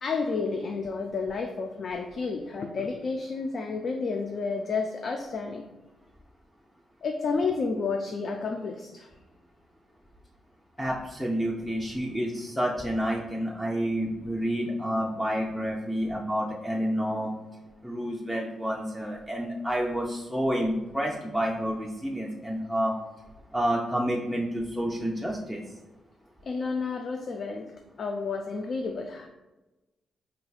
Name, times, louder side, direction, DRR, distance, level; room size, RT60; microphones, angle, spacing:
voice 1, 0.0-5.6 7.0-9.1 26.4-27.7 28.0-29.3, left 4 dB, 55° left, 4 dB, 0.3 m, -31 dB
voice 2, 10.8-17.3 17.8-22.9 23.5-25.6, equal, 5° left, -2 dB, 0.5 m, -29 dB
4.0 x 3.2 x 2.3 m, 1.1 s
hypercardioid pair, 45°, 0 cm